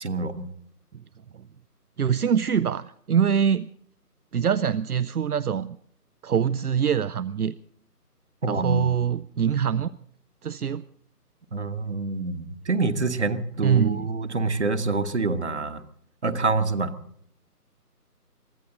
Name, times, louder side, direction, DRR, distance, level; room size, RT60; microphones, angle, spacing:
voice 1, 0.0-0.5 8.4-9.0 11.5-15.8 16.2-16.9, right 3 dB, 45° right, 11 dB, 1.3 m, -26 dB
voice 2, 2.0-3.7 4.3-5.8 6.2-7.5 8.5-9.9 10.4-10.8 13.6-14.1, right 8 dB, 70° right, 17 dB, 0.6 m, -24 dB
23.5 x 14.0 x 3.8 m, 0.66 s
figure-of-eight pair, 170°, 47 cm